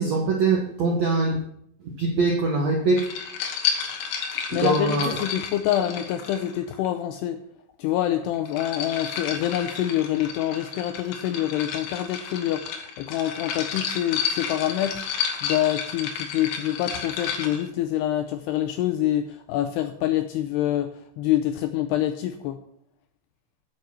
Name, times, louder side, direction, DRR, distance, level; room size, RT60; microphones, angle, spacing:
voice 1, 0.0-1.4 1.8-3.1 4.5-5.1, right 3 dB, 75° right, 0 dB, 1.6 m, -23 dB
sound 1, 3.0-6.9 8.2-17.6, left 7 dB, 70° left, 3.2 m, -31 dB
voice 2, 4.5-7.4 7.8-22.6, left 12 dB, 90° left, 8 dB, 2.4 m, -26 dB
9.7 x 8.0 x 5.9 m, 0.69 s
omnidirectional pair, 5.3 m